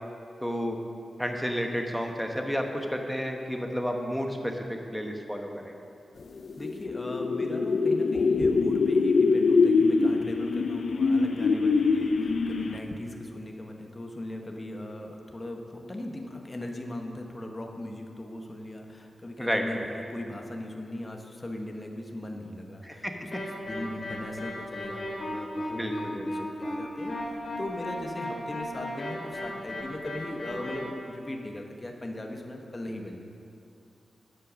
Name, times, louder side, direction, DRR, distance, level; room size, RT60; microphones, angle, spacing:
voice 1, 0.4-0.8 1.2-5.7 19.4-19.9 22.8-23.1 25.7-26.5, equal, ahead, 3 dB, 1.0 m, -31 dB
sound 1, 6.5-12.9, left 4 dB, 60° left, 0.6 m, -24 dB
voice 2, 6.6-23.3 23.7-33.2, left 1 dB, 20° left, 2 dB, 1.1 m, -39 dB
sound 2, 23.3-30.8, left 1 dB, 40° left, 3.4 m, -35 dB
12.0 x 7.7 x 6.2 m, 2.6 s
wide cardioid pair, 140°, 0 cm